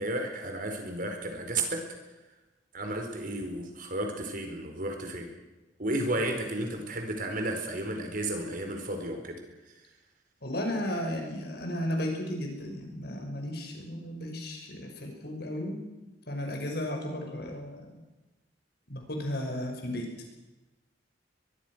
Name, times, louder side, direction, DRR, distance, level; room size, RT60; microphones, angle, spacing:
voice 1, 0.0-1.8 2.7-5.3 5.8-9.4, right 1 dB, 50° right, 4 dB, 4.7 m, -33 dB
voice 2, 10.4-15.8 16.3-17.8 18.9-20.1, left 1 dB, 60° left, 3 dB, 6.1 m, -34 dB
23.5 x 22.5 x 6.4 m, 1.1 s
head